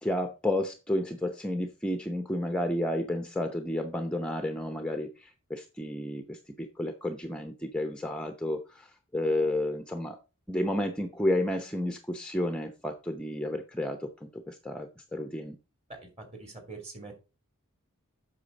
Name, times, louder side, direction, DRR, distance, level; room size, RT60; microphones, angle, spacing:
voice 1, 0.0-10.2 10.5-15.6, left 1 dB, 5° left, 6 dB, 0.6 m, -31 dB
voice 2, 15.9-17.2, right 3 dB, 30° right, 3 dB, 2.8 m, -44 dB
8.5 x 6.1 x 4.0 m, 0.30 s
head